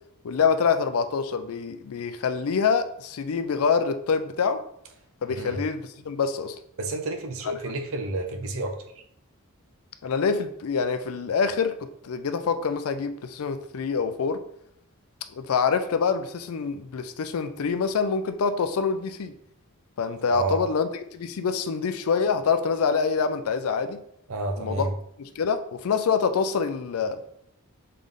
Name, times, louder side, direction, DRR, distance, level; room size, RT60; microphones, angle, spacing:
voice 1, 0.2-4.6 5.2-6.6 10.0-14.4 15.3-19.3 20.0-24.0 24.6-24.9 25.2-27.2, left 5 dB, 75° left, 9 dB, 0.4 m, -26 dB
voice 2, 6.8-8.8 20.3-20.6 24.3-24.9, right 2 dB, 65° right, 5 dB, 0.6 m, -30 dB
3.8 x 3.7 x 3.4 m, 0.71 s
head